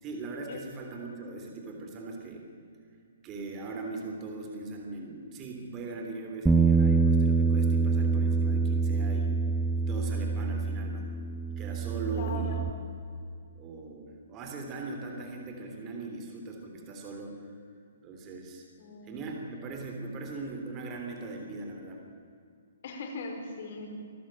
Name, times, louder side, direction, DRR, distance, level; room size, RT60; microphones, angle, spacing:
voice 1, 0.0-2.5 3.2-11.1 11.5-12.6 13.5-17.5 18.0-18.6 19.0-22.0, right 3 dB, 25° right, 2 dB, 3.4 m, -40 dB
Bass guitar, 6.5-12.7, right 4 dB, 5° right, 0.8 m, -26 dB
voice 2, 12.1-12.6 18.8-19.2 22.8-23.9, left 3 dB, 50° left, 4 dB, 5.0 m, -40 dB
25.5 x 13.5 x 8.8 m, 2.4 s
hypercardioid pair, 150°, 0 cm